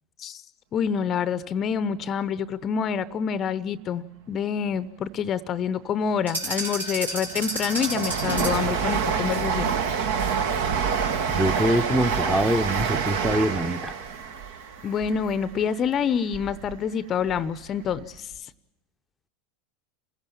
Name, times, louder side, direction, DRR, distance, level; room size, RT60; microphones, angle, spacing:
voice 1, 0.7-9.7 14.8-18.5, left 7 dB, 35° left, 18 dB, 0.7 m, -27 dB
sound 1, 6.3-8.8, right 1 dB, 80° right, 3.5 m, -31 dB
Train, 6.6-16.7 17.1-18.1 18.3-18.4, right 6 dB, 60° right, 1.5 m, -28 dB
voice 2, 11.3-13.9, equal, 5° right, 10 dB, 0.9 m, -24 dB
28.0 x 16.0 x 7.1 m, 0.96 s
figure-of-eight pair, 80°, 0 cm